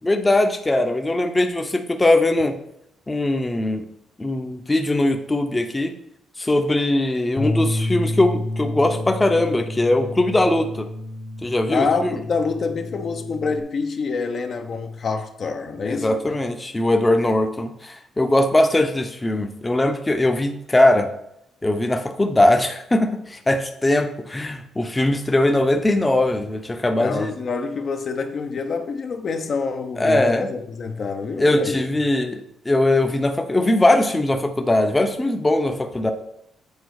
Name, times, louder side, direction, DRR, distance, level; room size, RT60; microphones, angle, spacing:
voice 1, 0.0-2.5 3.1-3.9 4.2-5.9 6.4-10.9 11.4-11.9 15.8-21.1 21.6-27.3 30.0-30.5 31.4-36.1, left 1 dB, 15° left, 0.7 m, -20 dB
Bass guitar, 7.4-13.6, left 1 dB, 35° left, 1.2 m, -29 dB
voice 2, 11.7-16.4 27.0-31.8, left 4 dB, 50° left, 0.7 m, -26 dB
8.3 x 3.9 x 4.8 m
cardioid pair, 90°, 0 cm